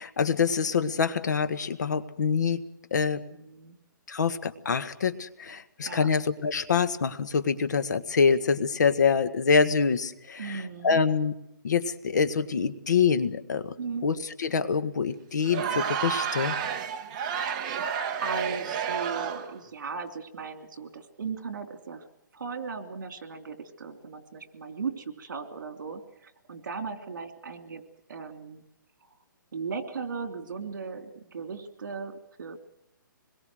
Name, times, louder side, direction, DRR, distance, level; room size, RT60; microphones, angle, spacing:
voice 1, 0.0-2.6 2.9-3.2 4.1-11.3 11.6-13.8 14.0-16.6, left 5 dB, 55° left, 12 dB, 1.6 m, -25 dB
voice 2, 3.3-3.8 5.8-6.1 10.4-11.0 13.8-14.1 18.2-22.0 22.3-27.8 28.1-28.6 29.5-32.6, right 5 dB, 60° right, 7 dB, 3.0 m, -37 dB
Crowd, 15.4-19.6, right 7 dB, 20° right, 1.1 m, -30 dB
26.0 x 21.5 x 6.4 m, 0.79 s
hypercardioid pair, 175°, 11 cm